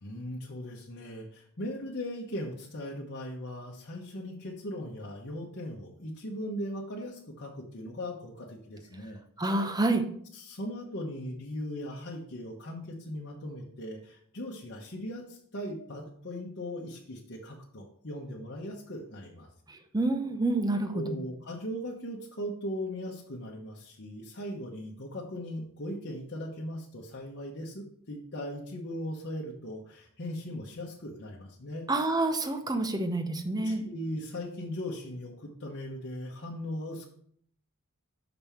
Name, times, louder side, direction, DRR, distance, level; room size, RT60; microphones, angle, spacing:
voice 1, 0.0-9.2 10.3-19.5 20.9-31.9 33.6-37.0, equal, 50° left, -3 dB, 1.0 m, -39 dB
voice 2, 9.4-10.1 19.9-21.0 31.9-33.8, right 2 dB, 15° right, 7 dB, 0.7 m, -28 dB
6.0 x 5.4 x 5.6 m, 0.63 s
head